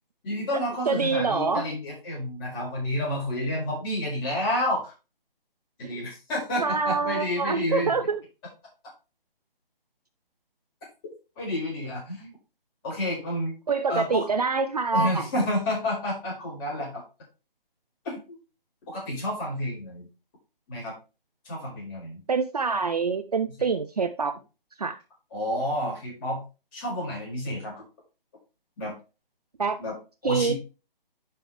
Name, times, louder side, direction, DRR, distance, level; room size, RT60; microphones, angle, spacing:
voice 1, 0.2-4.9 5.8-7.9 11.4-12.3 12.8-13.5 13.9-14.2 14.9-17.0 18.0-18.4 18.9-20.1 20.7-20.9 21.4-22.2 25.3-26.4 26.7-27.8 28.8-28.9 29.8-29.9 30.2-30.5, left 1 dB, 20° left, 4.7 m, -30 dB
voice 2, 0.9-1.6 5.8-6.0 6.6-8.2 13.7-15.3 22.3-24.4 24.8-25.0 29.6-29.8 30.2-30.5, right 4 dB, 45° right, 0.6 m, -26 dB
10.5 x 4.6 x 3.3 m
figure-of-eight pair, 145°, 29 cm